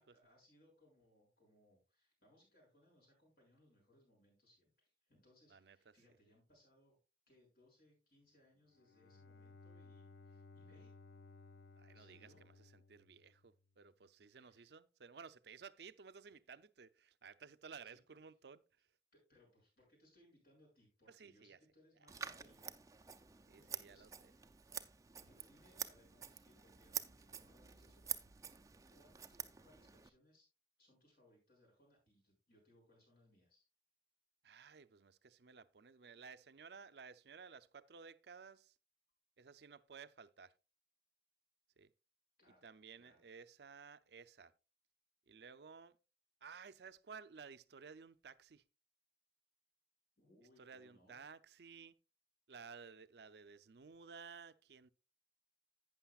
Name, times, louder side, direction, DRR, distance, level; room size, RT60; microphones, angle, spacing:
voice 1, 0.0-7.0 7.3-11.0 11.9-12.4 14.3-14.7 17.8-18.2 19.1-22.8 23.5-24.4 25.2-28.0 28.9-30.5 30.8-33.6 42.4-42.7 43.0-43.2 50.2-51.2, left 1 dB, 55° left, 6.4 m, -70 dB
Bowed string instrument, 8.7-13.7, left 3 dB, 80° left, 0.7 m, -60 dB
voice 2, 11.8-18.6 21.1-21.6 23.5-24.3 34.4-38.8 39.4-40.5 41.8-41.9 42.6-44.5 45.3-46.0 46.4-48.6 50.6-52.0 52.5-54.9, right 5 dB, 65° right, 0.5 m, -56 dB
Scissors, 22.1-30.1, right 8 dB, 20° right, 0.5 m, -48 dB
11.5 x 8.9 x 2.4 m
head